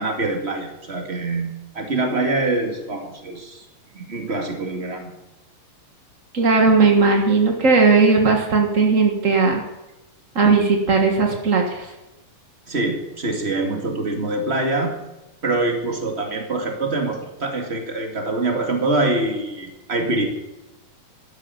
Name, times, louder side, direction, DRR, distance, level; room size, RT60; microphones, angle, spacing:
voice 1, 0.0-3.7 3.9-5.1 12.7-14.9 15.4-20.2, right 2 dB, 25° right, 3 dB, 1.8 m, -24 dB
voice 2, 6.3-9.6 10.3-11.9, right 4 dB, 60° right, 2 dB, 0.8 m, -17 dB
12.5 x 12.0 x 7.1 m, 1.0 s
omnidirectional pair, 4.1 m